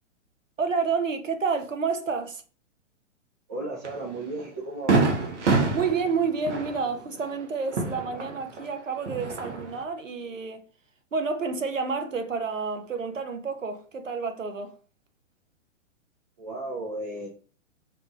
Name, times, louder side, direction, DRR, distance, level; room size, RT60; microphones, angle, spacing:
voice 1, 0.6-2.4 5.7-10.6 11.1-14.7, right 5 dB, 90° right, 0.7 m, -29 dB
voice 2, 3.5-5.1 16.4-17.3, right 2 dB, 15° right, 0.3 m, -34 dB
Fireworks, 3.8-4.0 4.4-4.5 4.9-8.7 9.0-9.8, right 3 dB, 65° right, 0.9 m, -26 dB
3.4 x 2.9 x 2.5 m
figure-of-eight pair, 115°, 38 cm